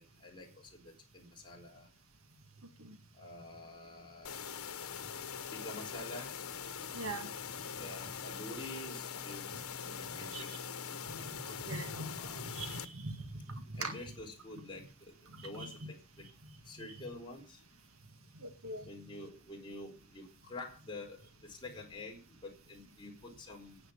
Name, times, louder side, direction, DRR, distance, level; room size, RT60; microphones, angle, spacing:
voice 1, 0.0-1.9 3.1-4.5 5.5-6.3 7.7-9.4 9.8-10.5 11.9-12.5 13.7-16.3 16.6-17.6 18.8-23.8, left 2 dB, 20° left, 0 dB, 4.3 m, -48 dB
sound 1, 4.2-12.9, left 7 dB, 90° left, 1.2 m, -43 dB
voice 2, 6.9-7.3 10.3-10.6 11.1-12.1 12.4-13.9 15.3-15.7 18.4-18.9, right 2 dB, 70° right, 8 dB, 1.9 m, -42 dB
10.0 x 9.6 x 7.1 m, 0.34 s
head